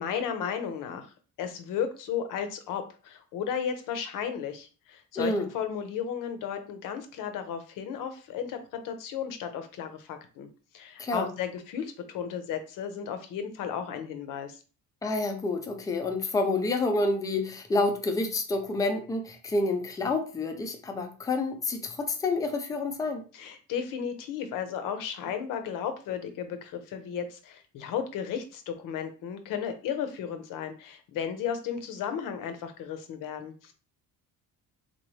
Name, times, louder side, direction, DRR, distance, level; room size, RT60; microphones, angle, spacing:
voice 1, 0.0-8.6 8.8-10.5 10.7-14.6 23.3-33.7, left 8 dB, 75° left, 7 dB, 0.8 m, -34 dB
voice 2, 5.2-5.5 11.0-11.3 15.0-23.2, left 2 dB, 10° left, 4 dB, 0.4 m, -28 dB
4.0 x 2.6 x 3.1 m, 0.36 s
cardioid pair, 175°, 33 cm